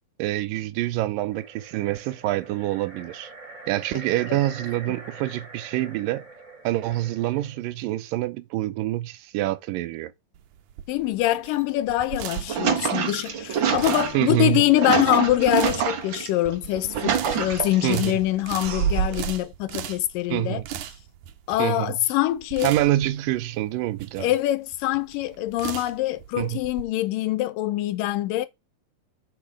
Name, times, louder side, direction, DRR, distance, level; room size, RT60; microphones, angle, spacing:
voice 1, 0.2-3.3 3.7-6.2 6.6-10.1 14.1-14.6 17.8-18.2 20.3-20.7 21.6-22.0 22.6-24.3 26.4-26.6, right 15 dB, 90° right, 2.4 m, -26 dB
sound 1, 1.2-7.6, right 3 dB, 25° right, 2.2 m, -44 dB
sound 2, 10.3-26.8, right 11 dB, 75° right, 2.2 m, -39 dB
voice 2, 10.9-20.6 21.5-22.7 24.2-28.5, left 15 dB, 85° left, 2.5 m, -24 dB
sound 3, 12.2-16.3 16.7-18.0 18.6-19.3, right 8 dB, 60° right, 1.3 m, -26 dB
8.6 x 4.9 x 6.2 m
omnidirectional pair, 3.8 m